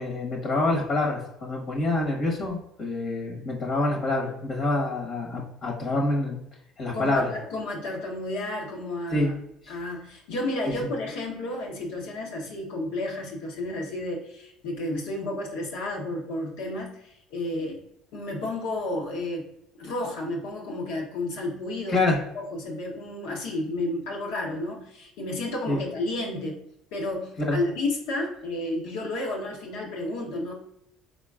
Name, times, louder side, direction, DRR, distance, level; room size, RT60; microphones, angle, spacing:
voice 1, 0.0-6.4 6.8-7.3 9.1-9.3 10.7-10.8 21.9-22.2 25.7-25.8 27.4-27.6, left 2 dB, 60° left, 0 dB, 1.3 m, -26 dB
voice 2, 6.9-9.3 9.7-17.8 18.1-19.5 19.8-26.6 26.9-30.5, left 2 dB, 80° left, -1 dB, 1.1 m, -32 dB
3.9 x 3.8 x 2.4 m, 0.77 s
supercardioid pair, 75°, 0 cm